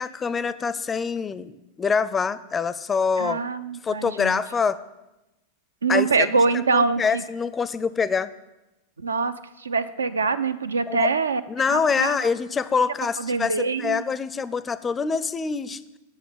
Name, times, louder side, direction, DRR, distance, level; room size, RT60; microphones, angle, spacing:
voice 1, 0.0-3.4 3.8-4.8 5.9-6.3 6.7-8.3 10.9-11.1 11.5-15.8, left 5 dB, 20° left, 16 dB, 0.5 m, -25 dB
voice 2, 3.2-4.4 5.8-7.2 9.0-11.4 11.7-12.2 13.2-14.0, right 4 dB, 75° right, 12 dB, 0.6 m, -24 dB
9.1 x 6.4 x 8.5 m, 0.99 s
figure-of-eight pair, 90°, 0 cm